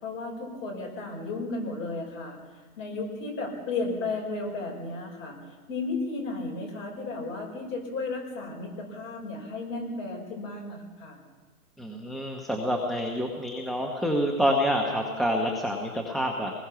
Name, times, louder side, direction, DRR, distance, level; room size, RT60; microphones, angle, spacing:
voice 1, 0.0-2.4 2.8-5.4 5.7-11.2, left 3 dB, 25° left, 0 dB, 5.7 m, -34 dB
voice 2, 11.8-16.5, equal, ahead, 1 dB, 0.9 m, -27 dB
25.5 x 21.0 x 5.8 m, 1.3 s
hypercardioid pair, 140°, 46 cm